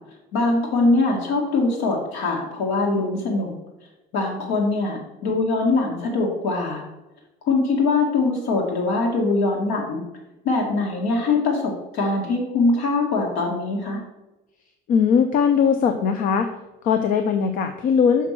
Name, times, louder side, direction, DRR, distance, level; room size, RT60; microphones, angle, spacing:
voice 1, 0.3-3.5 4.1-6.8 7.5-10.0 10.5-14.0, left 3 dB, 80° left, -1 dB, 1.8 m, -22 dB
voice 2, 14.9-16.5 16.8-18.3, left 6 dB, 45° left, 8 dB, 0.6 m, -19 dB
6.1 x 5.8 x 5.9 m, 1.0 s
cardioid pair, 175°, 20 cm